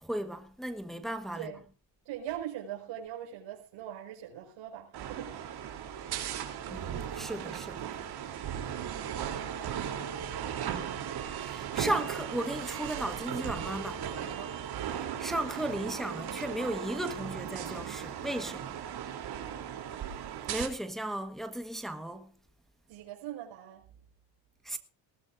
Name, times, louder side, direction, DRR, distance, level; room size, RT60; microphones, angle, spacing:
voice 1, 0.0-1.5 6.7-7.9 11.4-14.0 14.8-18.8 20.5-22.3 24.6-24.8, right 1 dB, ahead, 1.3 m, -35 dB
voice 2, 2.1-5.5 14.3-14.5 22.9-23.9, right 11 dB, 75° right, 5.4 m, -41 dB
sound 1, 4.9-20.7, right 9 dB, 55° right, 3.4 m, -37 dB
20.5 x 17.0 x 2.6 m
cardioid pair, 155°, 46 cm